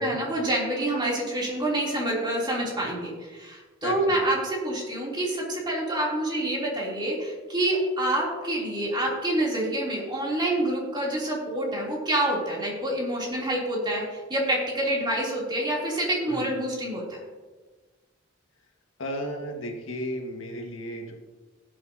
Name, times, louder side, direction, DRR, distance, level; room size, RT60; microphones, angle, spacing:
voice 1, 0.0-17.2, right 1 dB, 20° right, -4 dB, 3.1 m, -27 dB
voice 2, 3.8-4.3 16.3-16.5 19.0-21.1, equal, 75° left, 2 dB, 1.7 m, -34 dB
17.0 x 8.4 x 2.8 m, 1.3 s
head